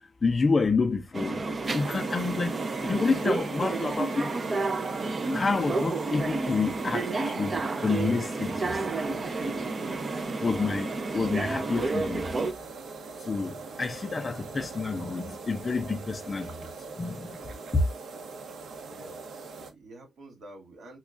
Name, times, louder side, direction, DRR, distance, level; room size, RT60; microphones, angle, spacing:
voice 1, 0.2-1.4 1.7-2.5 2.8-4.4 5.3-7.1 7.4-7.5 7.8-8.5 10.4-12.3 13.3-16.5 17.0-17.3, left 4 dB, 25° left, 0.4 m, -28 dB
sound 1, 1.1-12.5, right 3 dB, 30° right, 0.5 m, -31 dB
sound 2, 1.6-19.7, right 4 dB, 75° right, 1.0 m, -42 dB
voice 2, 18.8-21.0, right 1 dB, 60° right, 1.8 m, -49 dB
6.0 x 2.3 x 2.3 m
wide cardioid pair, 170°, 0 cm